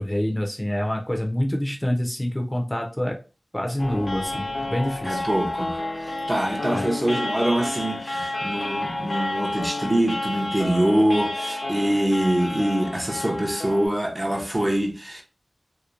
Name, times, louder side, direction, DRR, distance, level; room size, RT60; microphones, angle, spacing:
voice 1, 0.0-3.2 3.5-5.3 6.7-6.9, left 1 dB, 20° left, 0.6 m, -26 dB
sound 1, 3.8-13.9, left 2 dB, 65° left, 0.7 m, -30 dB
voice 2, 5.0-15.2, right 1 dB, 30° right, 0.7 m, -24 dB
2.8 x 2.1 x 2.4 m
wide cardioid pair, 55°, 0 cm